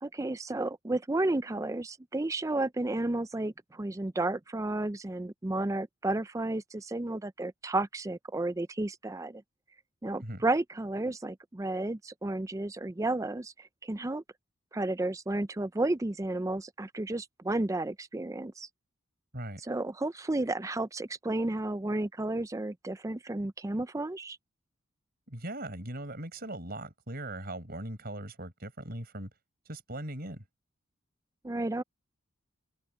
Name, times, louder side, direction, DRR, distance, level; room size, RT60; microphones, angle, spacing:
voice 1, 0.0-9.4 10.0-14.2 14.7-18.7 19.6-24.4 31.4-31.8, right 2 dB, 15° right, 0.4 m, -32 dB
voice 2, 25.3-29.3 29.6-30.4, right 1 dB, 45° right, 4.9 m, -39 dB
head